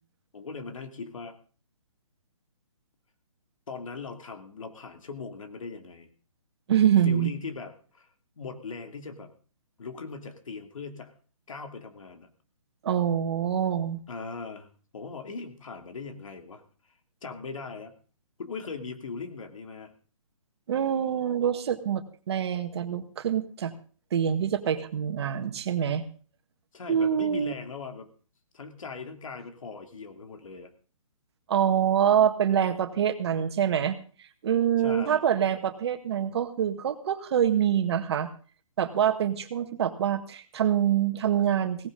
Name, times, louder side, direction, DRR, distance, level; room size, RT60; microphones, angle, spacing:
voice 1, 0.3-1.4 3.7-6.1 7.0-8.1 8.4-9.3 9.8-11.1 11.5-12.3 14.1-14.7 14.9-16.6 17.2-17.9 18.4-19.9 26.7-28.1 28.5-30.7 34.8-35.2, left 4 dB, 70° left, 6 dB, 2.7 m, -39 dB
voice 2, 6.7-7.3 12.8-14.0 20.7-23.7 24.1-26.0 26.9-27.5 31.5-38.3 38.8-41.9, right 9 dB, 50° right, 9 dB, 1.7 m, -25 dB
17.5 x 16.0 x 3.8 m, 0.39 s
hypercardioid pair, 150°, 18 cm